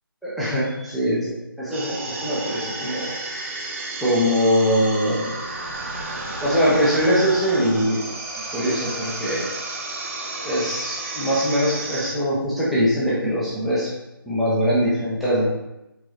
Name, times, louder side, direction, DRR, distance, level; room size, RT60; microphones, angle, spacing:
voice 1, 0.2-3.1 4.0-5.4 6.4-8.0 8.5-9.5 10.4-13.9 14.3-15.5, equal, ahead, -10 dB, 0.6 m, -22 dB
sound 1, 1.7-12.1, right 2 dB, 35° right, 0.8 m, -32 dB
4.4 x 3.7 x 3.1 m, 0.94 s
figure-of-eight pair, 160°, 12 cm